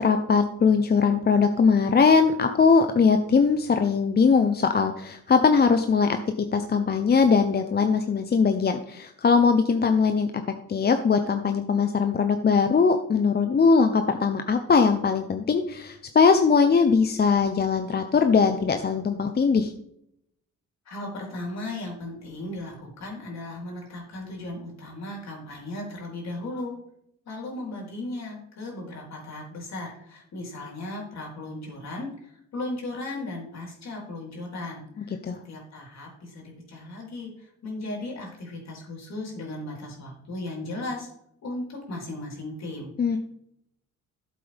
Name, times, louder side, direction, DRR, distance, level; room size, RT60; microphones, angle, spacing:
voice 1, 0.0-10.4 10.7-19.7 35.0-35.4 43.0-43.2, left 5 dB, 35° left, 7 dB, 0.8 m, -21 dB
voice 2, 20.9-26.7 27.3-32.1 32.5-34.8 35.3-37.3 37.6-41.1 41.4-43.2, left 2 dB, 60° left, -1 dB, 4.1 m, -36 dB
12.5 x 7.6 x 3.5 m, 0.76 s
cardioid pair, 90°, 30 cm